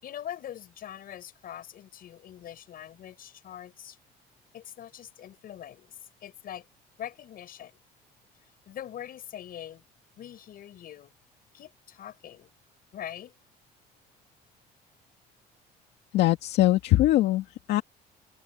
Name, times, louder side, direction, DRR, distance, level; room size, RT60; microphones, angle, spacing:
voice 1, 0.0-4.0 4.5-6.7 7.0-7.8 8.7-9.8 10.2-11.1 11.5-12.5 12.9-13.3, left 11 dB, 60° left, 6.3 m, -43 dB
voice 2, 16.1-17.8, left 15 dB, 80° left, 2.3 m, -22 dB
cardioid pair, 110°, 17 cm